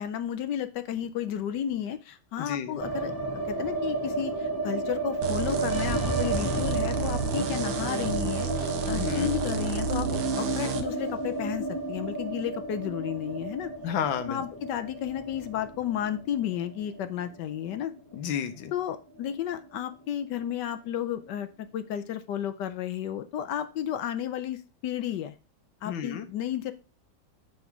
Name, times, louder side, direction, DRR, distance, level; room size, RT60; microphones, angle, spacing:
voice 1, 0.0-13.7 14.3-17.9 18.7-25.3 25.8-26.7, left 10 dB, 70° left, 11 dB, 1.2 m, -33 dB
voice 2, 2.4-2.8 8.9-9.3 13.8-14.4 18.1-18.7 25.9-26.3, left 8 dB, 85° left, 10 dB, 1.6 m, -31 dB
sound 1, 2.8-18.9 19.2-19.3 19.5-20.2, right 2 dB, 10° left, 1.4 m, -32 dB
sound 2, 5.2-10.9, right 8 dB, 65° right, 1.3 m, -32 dB
7.5 x 5.0 x 4.5 m, 0.30 s
omnidirectional pair, 2.0 m